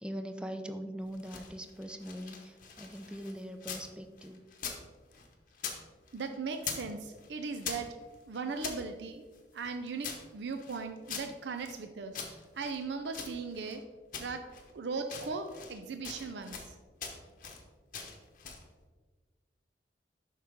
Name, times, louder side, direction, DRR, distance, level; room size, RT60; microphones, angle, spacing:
voice 1, 0.0-4.4, equal, 5° right, 7 dB, 0.4 m, -41 dB
sound 1, 1.0-3.9 4.2-5.8 6.1-6.9 7.2-8.8 9.3-11.8 12.1-13.8 14.1-14.7 15.0-15.8 16.0-16.7 17.0-17.6 17.9-18.7, left 6 dB, 50° left, 1.0 m, -43 dB
voice 2, 6.1-7.9 8.3-9.3 9.5-13.8 14.2-14.4 14.7-16.8, right 4 dB, 75° right, 6 dB, 0.5 m, -38 dB
7.6 x 5.5 x 3.6 m, 1.3 s
head